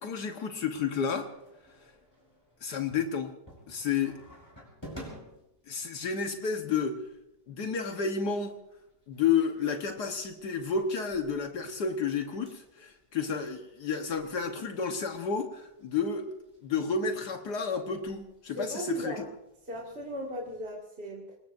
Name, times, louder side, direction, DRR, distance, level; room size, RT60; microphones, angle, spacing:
voice 1, 0.0-1.3 2.6-3.3 3.7-4.2 5.7-7.0 7.5-8.6 9.1-16.3 16.6-19.2, left 6 dB, 70° left, 1.7 m, -31 dB
sound 1, 1.2-20.7, equal, 15° left, 5.0 m, -55 dB
voice 2, 18.5-19.3 19.7-21.4, equal, 35° right, 2.4 m, -37 dB
26.0 x 20.0 x 2.6 m
omnidirectional pair, 1.8 m